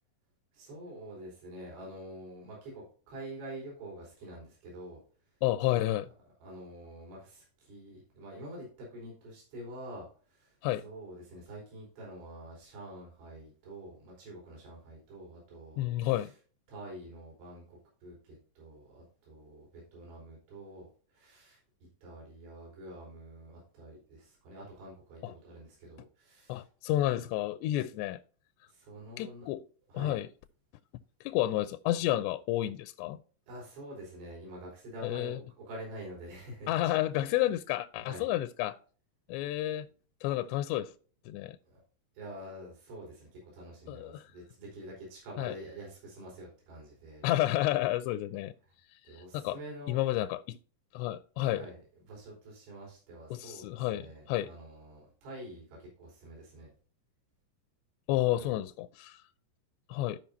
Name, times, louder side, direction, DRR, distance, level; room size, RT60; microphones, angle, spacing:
voice 1, 0.5-5.0 6.4-10.1 10.3-10.5 10.8-16.3 16.7-20.9 21.1-21.6 22.0-26.6 28.7-29.5 29.9-30.1 33.5-36.7 37.1-37.3 38.0-38.3 41.6-41.8 42.2-47.2 49.1-50.0 51.5-51.8 52.1-56.7 58.4-58.6, right 1 dB, 80° right, 6.8 m, -47 dB
voice 2, 5.4-6.1 10.6-10.9 15.8-16.3 25.2-25.3 26.5-28.2 29.2-29.6 29.9-30.3 31.2-33.2 35.0-35.4 36.7-38.8 39.3-39.9 40.2-40.9 41.3-41.6 43.9-44.3 45.4-45.6 47.2-48.5 49.1-49.6 49.9-50.6 50.9-51.7 53.3-54.5 58.1-59.2 59.9-60.2, left 14 dB, 85° left, 2.6 m, -31 dB
15.0 x 5.2 x 2.7 m
omnidirectional pair, 5.3 m